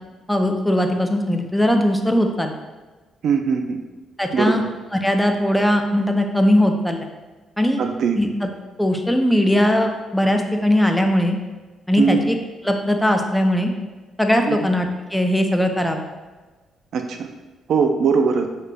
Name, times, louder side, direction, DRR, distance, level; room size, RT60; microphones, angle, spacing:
voice 1, 0.3-2.5 4.2-4.6 4.9-7.1 7.6-7.8 8.2-8.5 8.8-11.4 11.9-12.4 12.6-13.7 14.2-16.0, left 1 dB, 5° left, 4 dB, 0.5 m, -19 dB
voice 2, 3.2-3.8 4.3-4.5 7.8-8.2 12.0-12.2 14.5-14.6 16.9-17.3 17.7-18.5, right 5 dB, 65° right, 6 dB, 0.4 m, -20 dB
6.5 x 3.2 x 2.2 m, 1.3 s
cardioid pair, 90°, 0 cm